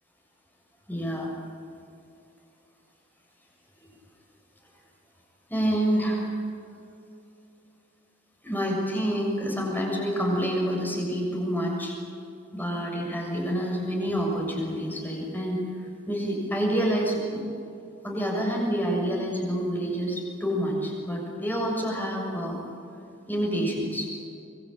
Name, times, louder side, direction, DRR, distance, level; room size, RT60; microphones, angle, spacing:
voice 1, 0.9-1.3 3.8-3.9 5.5-6.3 8.4-11.9 12.5-15.6 16.1-17.4 18.0-22.6 23.3-24.1, equal, 10° left, -1 dB, 6.8 m, -27 dB
25.5 x 22.5 x 8.9 m, 2.6 s
head